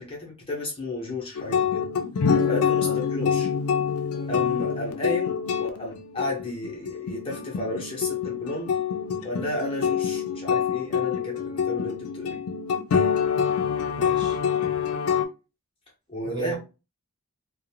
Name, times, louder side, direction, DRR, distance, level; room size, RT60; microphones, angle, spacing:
voice 1, 0.0-1.8 2.4-3.5 4.3-8.8 9.2-12.4 16.1-16.6, left 2 dB, 25° left, 0.6 m, -33 dB
sound 1, 1.4-15.3, left 7 dB, 90° left, 0.4 m, -26 dB
voice 2, 14.0-14.8 16.2-16.6, right 5 dB, 20° right, 0.7 m, -35 dB
2.5 x 2.1 x 2.7 m
head